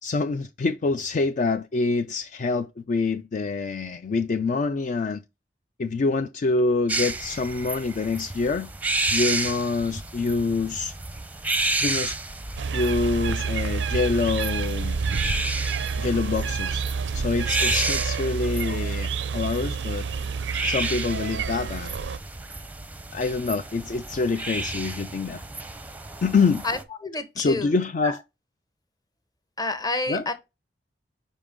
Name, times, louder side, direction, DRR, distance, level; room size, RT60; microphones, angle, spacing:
voice 1, 0.0-5.2 5.8-8.7 9.1-10.9 11.8-12.2 12.7-15.0 16.0-16.8 17.1-20.1 20.7-21.9 23.1-25.4 26.2-26.6 27.4-28.2 30.1-30.2, left 4 dB, 45° left, 0.4 m, -26 dB
sound 1, 6.9-26.8, right 2 dB, 10° right, 0.6 m, -32 dB
sound 2, 12.6-22.2, right 5 dB, 85° right, 0.4 m, -28 dB
voice 2, 26.6-27.7 28.0-28.1 29.6-30.3, left 2 dB, 20° left, 0.8 m, -29 dB
5.2 x 5.1 x 3.5 m
head